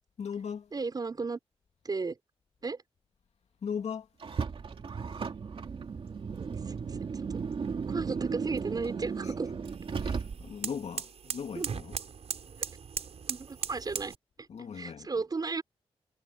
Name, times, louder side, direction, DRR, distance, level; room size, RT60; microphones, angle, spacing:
voice 1, 0.2-0.7 3.6-4.1 10.0-12.0 14.5-15.1, left 7 dB, 80° left, 2.6 m, -38 dB
voice 2, 0.7-1.4 1.8-2.2 2.6-2.8 6.3-7.3 7.9-9.5 11.5-11.7 13.3-14.5 14.7-15.6, right 4 dB, 35° right, 5.8 m, -35 dB
Car, 4.2-10.7, right 5 dB, 55° right, 2.4 m, -35 dB
sound 1, 7.4-14.2, right 6 dB, 75° right, 4.4 m, -40 dB
wide cardioid pair, 160°, 11 cm